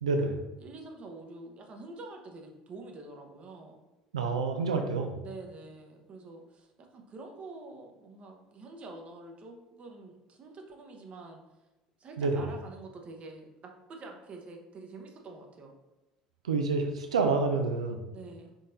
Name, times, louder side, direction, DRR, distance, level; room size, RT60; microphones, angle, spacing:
voice 1, 0.0-0.4 4.1-5.2 12.2-12.4 16.4-18.1, right 4 dB, 85° right, 5 dB, 0.4 m, -28 dB
voice 2, 0.6-3.8 5.2-11.4 12.0-15.7 18.1-18.5, right 3 dB, 40° right, 2 dB, 0.7 m, -47 dB
4.2 x 3.7 x 2.5 m, 1.0 s
hypercardioid pair, 65°, 3 cm